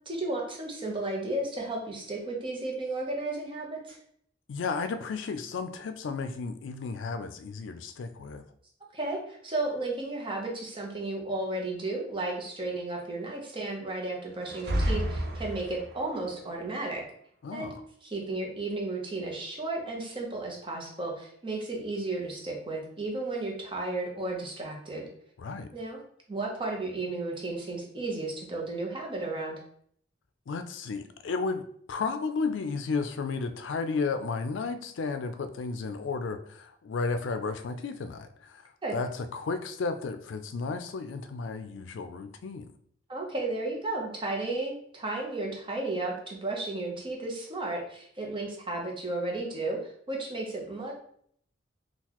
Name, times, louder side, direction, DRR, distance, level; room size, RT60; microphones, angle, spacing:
voice 1, 0.1-4.0 8.9-17.0 17.5-17.7 18.1-25.1 25.7-26.0 26.3-29.6 38.8-39.0 43.1-50.9, right 2 dB, 30° right, 0 dB, 0.8 m, -33 dB
voice 2, 4.5-8.4 17.4-17.8 25.4-25.7 30.5-38.6 38.9-42.7, left 4 dB, 80° left, 9 dB, 0.4 m, -33 dB
sound 1, 14.4-16.1, equal, 60° right, 0.5 m, -30 dB
3.8 x 2.4 x 2.9 m, 0.63 s
head